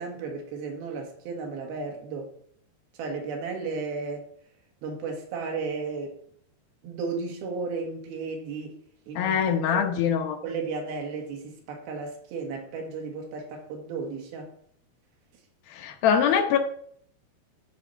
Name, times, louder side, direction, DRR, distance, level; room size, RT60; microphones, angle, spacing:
voice 1, 0.0-2.3 3.0-4.3 4.8-6.2 6.8-8.8 9.1-9.3 9.7-9.8 10.4-14.5, right 4 dB, 70° right, 3.6 m, -34 dB
voice 2, 9.2-10.4 15.7-16.6, left 7 dB, 75° left, 2.6 m, -23 dB
13.5 x 4.8 x 5.7 m
omnidirectional pair, 4.7 m